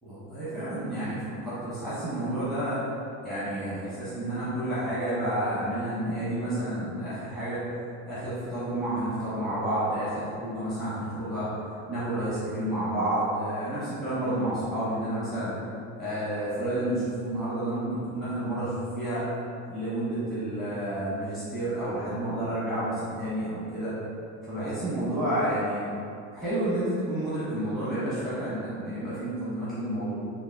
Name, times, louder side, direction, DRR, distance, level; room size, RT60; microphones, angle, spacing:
voice 1, 0.0-2.8 3.2-7.6 8.0-11.5 11.9-15.5 15.9-19.2 19.7-23.9 24.4-25.9 26.3-30.1, right 1 dB, ahead, -12 dB, 0.9 m, -30 dB
3.5 x 2.0 x 3.4 m, 2.5 s
supercardioid pair, 110°, 35 cm